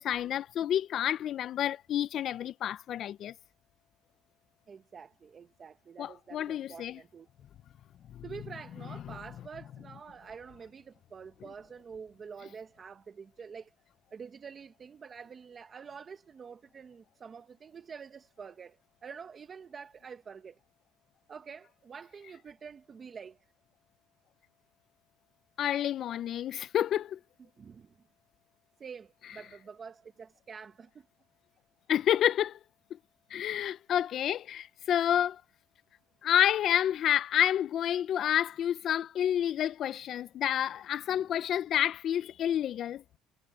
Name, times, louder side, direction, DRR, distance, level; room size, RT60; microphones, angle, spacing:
voice 1, 0.0-3.3 6.0-7.0 8.1-8.2 25.6-27.2 31.9-32.6 33.3-35.4 36.2-43.2, left 10 dB, 45° left, 0.5 m, -29 dB
voice 2, 4.7-7.3 8.2-13.7 14.1-20.6 21.3-23.5 27.6-28.0 28.8-31.1 41.1-41.3, right 6 dB, 25° right, 1.0 m, -47 dB
cardioid pair, 140°, 0 cm